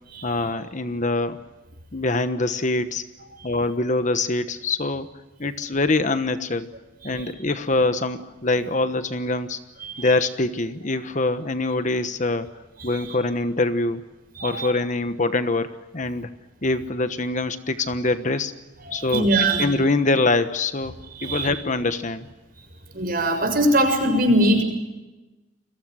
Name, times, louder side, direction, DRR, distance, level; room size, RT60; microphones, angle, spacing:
voice 1, 0.2-1.4 1.9-3.0 3.4-5.1 5.4-6.7 7.0-9.6 10.0-12.5 12.8-14.0 14.4-16.3 16.6-18.5 18.9-19.3 19.6-20.9 21.2-22.3, left 2 dB, 40° left, 10 dB, 1.2 m, -24 dB
voice 2, 12.8-13.1 14.4-14.7 18.9-19.7 21.2-21.5 22.9-24.6, right 1 dB, 50° right, 5 dB, 6.8 m, -22 dB
30.0 x 22.5 x 6.4 m, 1.1 s
head